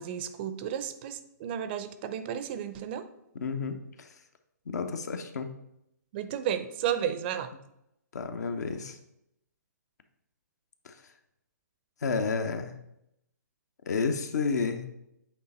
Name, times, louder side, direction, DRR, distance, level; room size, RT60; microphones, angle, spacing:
voice 1, 0.0-3.1 6.1-7.5, right 9 dB, 35° right, 11 dB, 0.5 m, -33 dB
voice 2, 3.3-4.1 4.7-5.5 8.1-9.0 10.8-10.9 12.0-12.7 13.9-14.9, left 4 dB, 65° left, 7 dB, 0.9 m, -31 dB
8.2 x 3.3 x 4.2 m, 0.81 s
hypercardioid pair, 135°, 10 cm